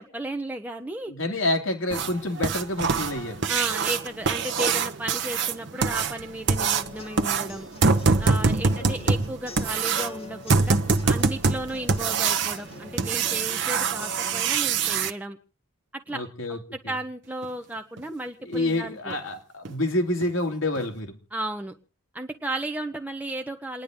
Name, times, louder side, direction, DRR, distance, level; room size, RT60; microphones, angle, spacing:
voice 1, 0.0-1.4 3.5-7.7 8.2-15.4 15.9-16.2 16.5-19.2 21.3-21.7 22.1-23.8, right 1 dB, 5° right, 4 dB, 0.8 m, -34 dB
voice 2, 1.1-3.4 8.8-8.9 16.1-16.6 16.8-16.9 18.5-21.1, left 1 dB, 65° left, 3 dB, 2.4 m, -28 dB
sound 1, 1.9-15.1 17.4-17.5 18.0-18.1 18.5-18.6 19.1-19.2 19.7-19.8 20.2-20.3 20.8-20.9, right 4 dB, 55° right, 0.8 m, -24 dB
sound 2, 6.5-14.5, left 3 dB, 25° left, 2.3 m, -45 dB
28.5 x 10.5 x 3.7 m, 0.37 s
head